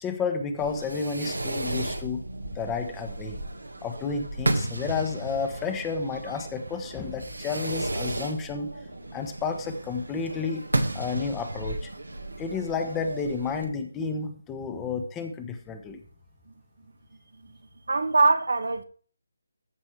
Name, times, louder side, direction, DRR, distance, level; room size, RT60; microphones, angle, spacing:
voice 1, 0.0-2.2 2.5-3.4 3.8-8.7 9.1-10.6 10.9-11.9 12.4-16.0, left 5 dB, 15° left, 1.2 m, -31 dB
Fireworks, 0.6-13.6, right 2 dB, 90° right, 1.7 m, -33 dB
voice 2, 17.9-18.8, right 3 dB, 70° right, 1.2 m, -23 dB
14.0 x 6.0 x 3.3 m
figure-of-eight pair, 150°, 0 cm